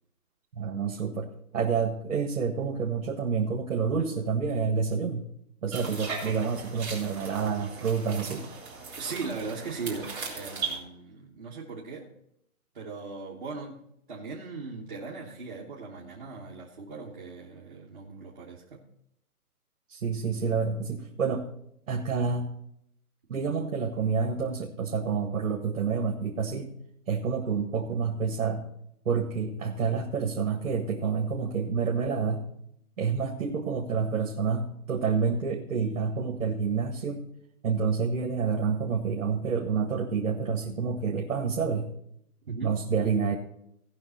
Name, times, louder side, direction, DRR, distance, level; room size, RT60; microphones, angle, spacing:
voice 1, 0.5-1.3 1.5-5.2 5.6-8.4 19.9-21.4 21.9-22.5 23.3-26.7 27.1-28.7 29.0-32.4 33.0-37.2 37.6-41.9 42.6-43.3, right 5 dB, 55° right, 2 dB, 1.4 m, -28 dB
sound 1, 5.7-10.8, right 5 dB, 5° right, 2.3 m, -38 dB
voice 2, 9.0-12.1 12.7-13.8 14.1-18.8 42.5-42.8, right 4 dB, 30° right, -5 dB, 1.2 m, -38 dB
17.0 x 6.0 x 4.2 m, 0.75 s
hypercardioid pair, 175°, 45 cm